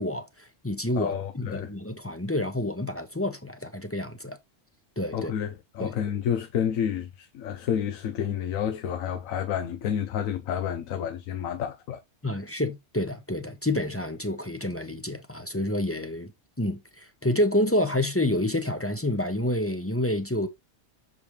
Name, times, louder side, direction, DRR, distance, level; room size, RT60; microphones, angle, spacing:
voice 1, 0.0-4.4 5.0-5.3 5.8-5.9 12.2-16.3 16.6-20.5, left 1 dB, 15° left, 0.6 m, -28 dB
voice 2, 1.0-1.7 5.1-12.0, left 8 dB, 90° left, 1.1 m, -30 dB
7.0 x 4.7 x 3.2 m
omnidirectional pair, 1.4 m